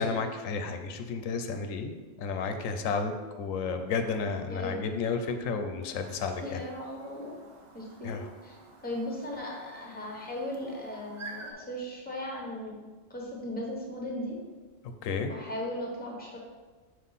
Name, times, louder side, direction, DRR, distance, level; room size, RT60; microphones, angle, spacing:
voice 1, 0.0-1.9 2.2-6.6 8.0-8.3 15.0-15.3, left 4 dB, 90° left, 7 dB, 1.0 m, -32 dB
voice 2, 4.5-4.9 5.9-6.0 6.4-7.4 7.7-8.2 8.4-8.6 8.8-12.8 13.1-14.4 15.3-16.4, left 1 dB, 10° left, -2 dB, 1.1 m, -37 dB
Chirp tweet, 5.9-11.5, right 3 dB, 40° right, 0.7 m, -49 dB
5.5 x 5.0 x 4.0 m, 1.3 s
omnidirectional pair, 1.3 m